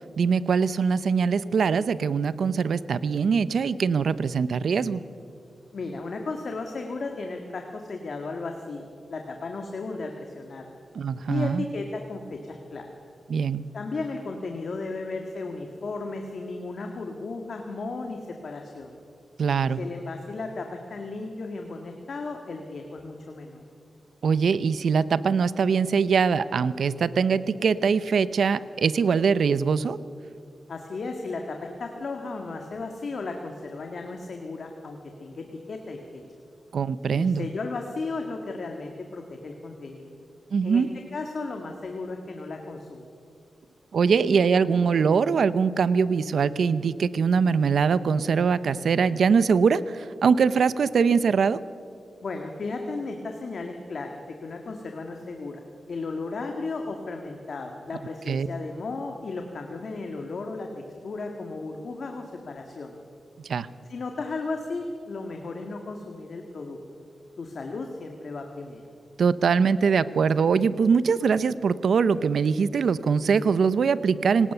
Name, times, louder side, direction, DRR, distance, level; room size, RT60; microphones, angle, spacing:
voice 1, 0.2-5.0 10.9-11.6 13.3-13.6 19.4-19.8 24.2-30.0 36.7-37.5 40.5-40.9 43.9-51.6 58.3-58.5 63.4-63.7 69.2-74.5, right 6 dB, 75° right, 16 dB, 0.6 m, -22 dB
voice 2, 5.7-10.8 11.3-12.9 13.7-19.0 19.8-23.6 30.7-36.2 37.1-40.1 40.6-40.8 41.1-43.0 52.2-55.6 55.9-60.7 61.0-63.0 63.9-66.8 67.4-68.9, left 3 dB, 60° left, 3 dB, 1.8 m, -35 dB
26.0 x 18.5 x 6.8 m, 2.5 s
wide cardioid pair, 115°, 0 cm